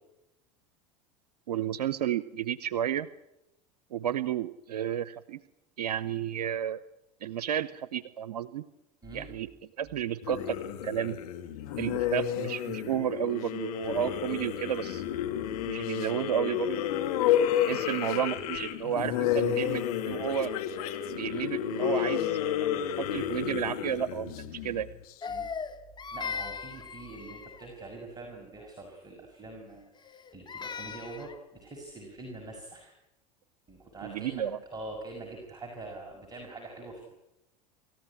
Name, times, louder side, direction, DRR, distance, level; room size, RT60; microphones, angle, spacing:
voice 1, 1.5-3.1 3.9-5.4 5.8-6.8 7.2-8.6 9.1-9.5 9.8-11.2 11.8-15.2 15.7-16.8 17.6-20.5 21.1-22.7 23.0-24.9 34.0-34.6, right 10 dB, 85° right, 16 dB, 0.8 m, -32 dB
sound 1, 10.2-25.1, left 10 dB, 70° left, 2.5 m, -31 dB
Crying sobbing, 25.2-27.7 30.0-31.4, left 6 dB, 20° left, 2.3 m, -38 dB
voice 2, 26.1-32.9 33.7-34.4 34.7-37.1, right 2 dB, 20° right, 1 dB, 6.0 m, -44 dB
26.5 x 14.5 x 10.0 m, 0.90 s
hypercardioid pair, 90°, 20 cm